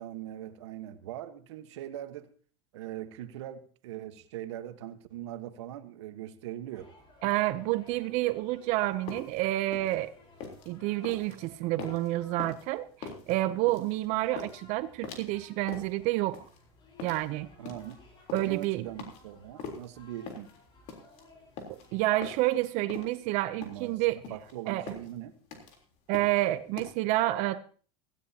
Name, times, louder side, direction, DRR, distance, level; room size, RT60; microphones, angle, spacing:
voice 1, 0.0-2.3 2.7-6.9 17.6-18.0 18.4-20.5 23.6-25.4, right 12 dB, 85° right, 10 dB, 1.3 m, -41 dB
sound 1, 6.7-22.1, left 2 dB, 35° left, 4.4 m, -58 dB
voice 2, 7.2-10.1 10.7-16.4 17.0-17.5 18.3-18.9 21.9-24.2 24.7-24.9 26.1-27.6, right 17 dB, 55° right, 14 dB, 0.7 m, -29 dB
sound 2, 8.9-26.9, left 5 dB, 55° left, 3.6 m, -44 dB
17.0 x 15.5 x 2.9 m, 0.42 s
supercardioid pair, 130°, 14 cm